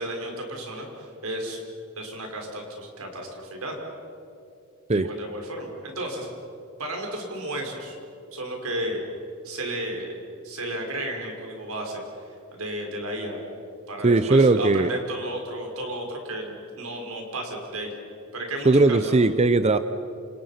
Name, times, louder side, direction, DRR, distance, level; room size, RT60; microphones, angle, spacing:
voice 1, 0.0-1.6 2.0-3.8 4.9-6.3 6.8-8.0 8.3-9.0 9.4-10.1 10.4-12.0 12.5-13.4 13.9-17.9 18.3-19.2, right 1 dB, 85° right, 2 dB, 5.4 m, -33 dB
voice 2, 14.0-14.9 18.6-19.8, right 3 dB, 30° right, 12 dB, 0.6 m, -18 dB
28.5 x 28.0 x 5.8 m, 2.6 s
head